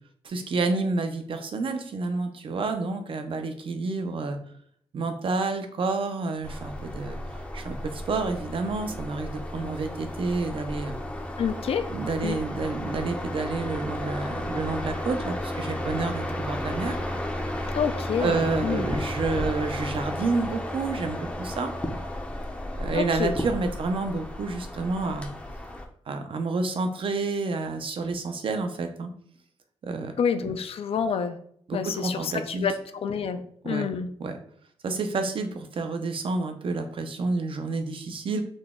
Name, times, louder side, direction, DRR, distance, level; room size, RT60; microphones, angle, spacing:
voice 1, 0.2-4.4 4.9-11.0 11.9-17.0 18.2-21.7 22.8-25.3 26.1-29.1 29.8-30.1 30.5-30.6 31.7-32.7 33.6-33.9 34.2-34.4 34.8-38.4, right 3 dB, 60° right, 6 dB, 0.5 m, -29 dB
sound 1, 6.4-25.8, left 1 dB, 10° left, 0.5 m, -33 dB
voice 2, 11.4-11.9 12.2-12.4 17.7-18.8 22.9-23.3 30.2-31.4 31.7-34.1, left 7 dB, 70° left, 9 dB, 0.4 m, -28 dB
3.9 x 2.2 x 3.5 m, 0.63 s
wide cardioid pair, 125°, 10 cm